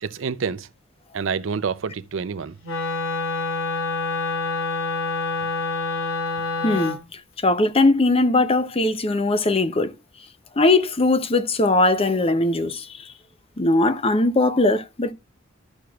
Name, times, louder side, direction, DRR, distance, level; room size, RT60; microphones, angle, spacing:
voice 1, 0.0-0.7 1.1-2.6, right 5 dB, 70° right, 0.5 m, -27 dB
Wind instrument woodwind instrument, 2.6-7.0, left 3 dB, 85° left, 2.1 m, -26 dB
voice 2, 6.6-9.9 10.6-13.1 13.6-15.1, left 2 dB, 30° left, 0.6 m, -20 dB
13.0 x 6.2 x 2.3 m
head